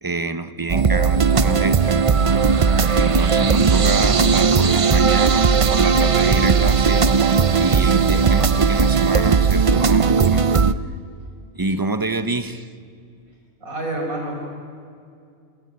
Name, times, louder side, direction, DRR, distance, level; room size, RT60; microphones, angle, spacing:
voice 1, 0.0-2.0 3.0-7.1 7.6-10.5 11.5-12.7, right 3 dB, 20° right, 11 dB, 0.8 m, -27 dB
sound 1, 0.7-10.7, right 5 dB, 45° right, 0.4 m, -17 dB
voice 2, 13.6-14.4, right 1 dB, 85° right, 1 dB, 6.0 m, -28 dB
30.0 x 18.0 x 9.2 m, 2.4 s
omnidirectional pair, 1.4 m